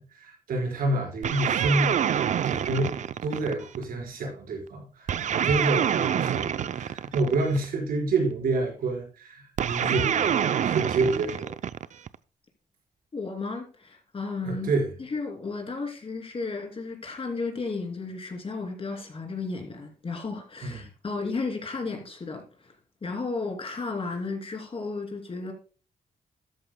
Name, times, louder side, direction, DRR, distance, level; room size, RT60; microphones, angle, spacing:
voice 1, 0.0-11.5 14.4-14.9 20.6-20.9, right 2 dB, 85° right, 4.7 m, -28 dB
sound 1, 1.2-3.8 5.1-7.6 9.6-12.1, right 8 dB, 55° right, 0.5 m, -26 dB
voice 2, 13.1-14.7 15.0-22.7 23.0-25.5, left 3 dB, 40° left, 2.9 m, -33 dB
13.0 x 11.0 x 2.2 m
cardioid pair, 85°, 15 cm